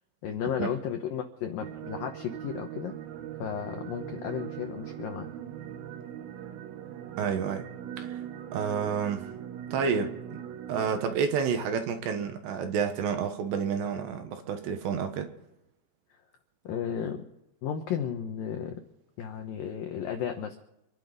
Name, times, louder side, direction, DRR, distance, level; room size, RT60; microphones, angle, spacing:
voice 1, 0.2-2.9 3.4-5.3 16.6-17.2 17.6-18.8 19.2-20.6, left 8 dB, 80° left, 5 dB, 2.0 m, -33 dB
sound 1, 1.6-11.1, right 10 dB, 85° right, 3.7 m, -40 dB
voice 2, 7.2-7.7 8.0-8.2 8.5-9.3 9.7-10.4 10.7-15.3, right 6 dB, 70° right, 6 dB, 3.2 m, -30 dB
27.5 x 11.5 x 4.1 m, 0.88 s
omnidirectional pair, 5.6 m